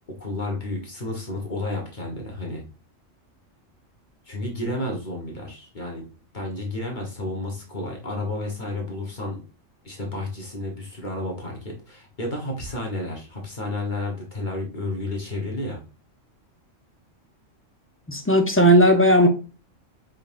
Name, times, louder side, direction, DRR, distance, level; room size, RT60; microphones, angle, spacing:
voice 1, 0.1-2.6 4.3-6.0 6.3-9.4 9.8-15.8, left 2 dB, 40° left, 0 dB, 1.3 m, -31 dB
voice 2, 18.1-19.3, equal, 15° left, 3 dB, 0.4 m, -16 dB
5.0 x 3.9 x 2.5 m, 0.34 s
omnidirectional pair, 1.3 m